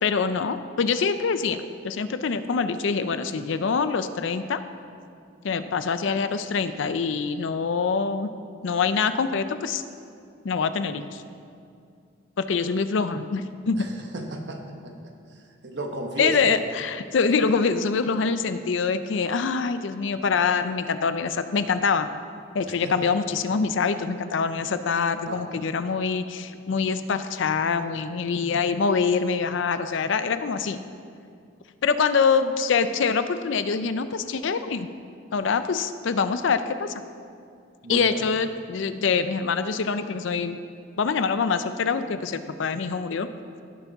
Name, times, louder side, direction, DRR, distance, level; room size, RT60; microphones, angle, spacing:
voice 1, 0.0-4.6 5.4-8.3 8.6-9.8 10.4-11.2 12.4-13.9 16.2-22.1 22.5-30.8 31.8-34.9 35.3-36.9 37.9-40.6 41.0-43.3, left 5 dB, 70° left, 11 dB, 0.4 m, -25 dB
voice 2, 13.7-14.9 15.6-16.5 22.7-23.1 25.3-25.6 37.8-38.2, right 2 dB, 60° right, 3 dB, 1.1 m, -34 dB
16.5 x 5.9 x 4.0 m, 2.4 s
head